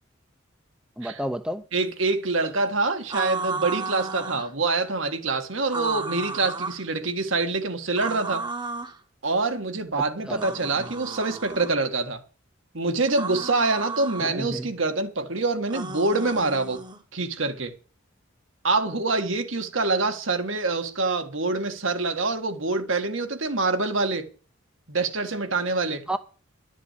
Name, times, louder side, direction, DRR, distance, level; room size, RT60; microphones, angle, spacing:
voice 1, 1.0-1.6 10.3-10.5 14.2-14.7 26.1-26.2, right 1 dB, 5° right, 0.6 m, -30 dB
voice 2, 1.7-8.5 9.2-12.2 12.7-16.8 17.1-17.7 18.6-24.3 24.9-26.1, right 3 dB, 75° right, 1.8 m, -25 dB
sound 1, 3.1-4.5 5.7-6.8 8.0-9.0 10.3-11.8 13.1-14.3 15.7-17.0, right 4 dB, 20° right, 1.0 m, -33 dB
12.0 x 7.4 x 8.4 m
head